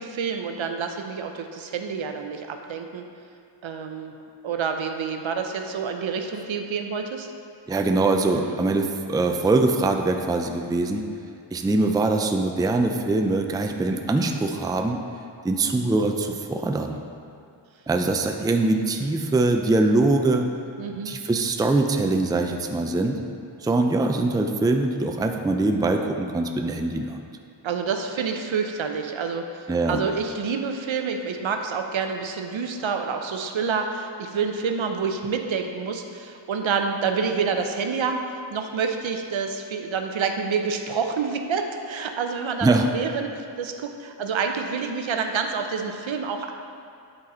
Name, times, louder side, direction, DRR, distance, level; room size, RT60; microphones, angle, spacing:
voice 1, 0.0-3.1 3.6-4.1 4.4-7.3 8.3-8.6 20.8-21.2 27.6-46.5, right 5 dB, 75° right, 5 dB, 0.7 m, -28 dB
voice 2, 7.7-11.0 11.5-15.0 15.4-17.0 17.9-20.5 21.0-23.2 23.6-27.2 29.7-30.0 42.6-42.9, right 2 dB, 10° right, 4 dB, 0.3 m, -23 dB
8.9 x 4.1 x 4.2 m, 2.4 s
wide cardioid pair, 80°, 47 cm